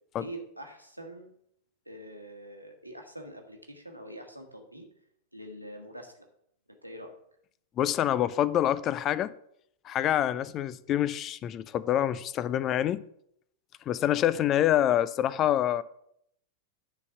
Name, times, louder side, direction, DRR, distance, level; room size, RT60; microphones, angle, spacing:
voice 1, 0.2-1.3 1.8-4.9 5.3-6.3 6.7-7.2, right 1 dB, 90° right, 1.4 m, -44 dB
voice 2, 7.8-9.3 9.8-13.1 13.9-15.8, left 11 dB, 30° left, 0.4 m, -26 dB
9.7 x 4.1 x 6.7 m
figure-of-eight pair, 90°, 0 cm